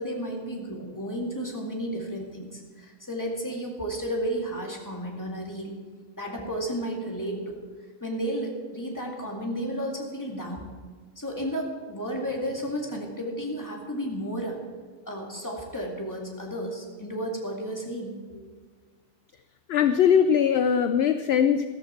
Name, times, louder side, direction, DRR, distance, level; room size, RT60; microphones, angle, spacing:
voice 1, 0.0-5.8 6.2-7.6 8.0-10.7 11.2-14.6 15.1-18.4, equal, 15° left, -1 dB, 2.3 m, -32 dB
voice 2, 19.7-21.7, left 8 dB, 60° left, 10 dB, 0.7 m, -21 dB
14.0 x 13.5 x 4.5 m, 1.5 s
omnidirectional pair, 1.4 m